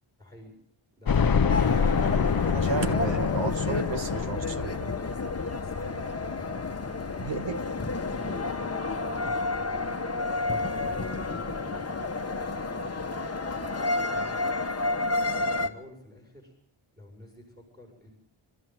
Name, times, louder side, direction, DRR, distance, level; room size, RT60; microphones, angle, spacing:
voice 1, 0.2-0.6 1.0-1.3 5.6-6.1 6.4-7.3 8.1-12.5 13.4-14.4 15.5-16.6 16.9-18.1, left 1 dB, 20° right, 1 dB, 6.6 m, -51 dB
sound 1, 1.1-10.0 10.5-10.6 10.9-11.0 12.2-12.3 12.6-12.7, left 6 dB, 45° left, 0.8 m, -28 dB
sound 2, 1.5-15.7, left 3 dB, 30° left, 1.4 m, -31 dB
voice 2, 2.4-5.0 7.2-7.6, right 5 dB, 60° right, 8 dB, 1.6 m, -33 dB
26.5 x 14.0 x 7.9 m, 0.68 s
wide cardioid pair, 100°, 50 cm